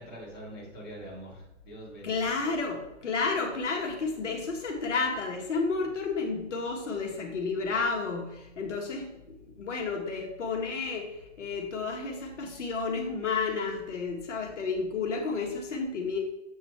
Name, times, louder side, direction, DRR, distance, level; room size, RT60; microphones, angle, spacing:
voice 1, 0.0-2.3, equal, 20° left, -7 dB, 2.0 m, -44 dB
voice 2, 2.0-16.2, left 4 dB, 75° left, 1 dB, 1.7 m, -31 dB
7.9 x 4.0 x 4.4 m, 0.93 s
hypercardioid pair, 180°, 36 cm